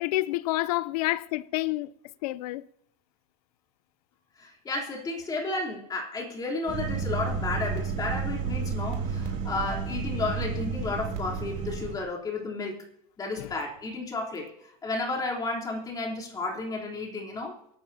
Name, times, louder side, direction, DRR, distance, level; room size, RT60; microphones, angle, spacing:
voice 1, 0.0-1.9 2.2-2.7 13.4-13.5, left 18 dB, 75° left, 0.7 m, -28 dB
voice 2, 4.4-12.8 13.2-17.5, left 3 dB, 20° left, 3.7 m, -32 dB
sound 1, 6.7-11.9, right 5 dB, 40° right, 3.4 m, -31 dB
23.5 x 12.5 x 2.9 m
supercardioid pair, 155°, 20 cm